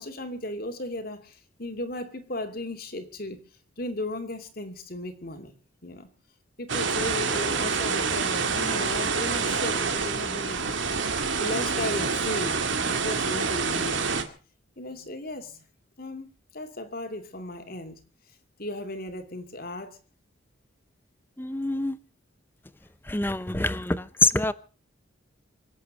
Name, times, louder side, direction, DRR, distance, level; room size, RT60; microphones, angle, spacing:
voice 1, 0.0-3.4 3.8-5.5 5.8-6.1 6.6-10.8 11.0-11.1 11.4-12.6 12.9-14.0 14.8-15.6 16.0-18.0 18.6-20.0, left 1 dB, 45° left, 2.5 m, -35 dB
sound 1, 6.7-14.2, right 5 dB, 65° right, 2.1 m, -27 dB
voice 2, 21.4-22.0 23.1-24.5, left 2 dB, 10° left, 0.7 m, -25 dB
25.0 x 8.4 x 6.6 m
head